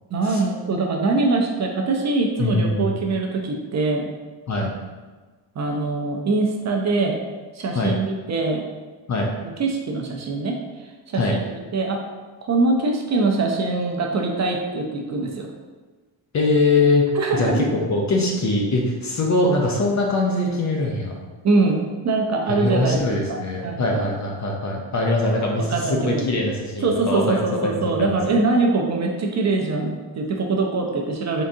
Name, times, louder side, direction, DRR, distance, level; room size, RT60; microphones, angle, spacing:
voice 1, 0.1-4.1 5.6-7.2 7.5-8.6 9.4-10.6 11.1-11.4 11.7-12.0 12.4-15.5 17.2-17.7 21.4-24.1 25.7-26.3 26.8-31.4, right 3 dB, 40° right, 2 dB, 0.5 m, -23 dB
voice 2, 2.4-3.0 4.5-4.7 7.7-7.9 9.1-9.3 11.2-11.4 16.3-21.2 22.5-28.2, left 2 dB, 40° left, 0 dB, 0.6 m, -22 dB
3.8 x 3.5 x 2.6 m, 1.3 s
cardioid pair, 115°, 47 cm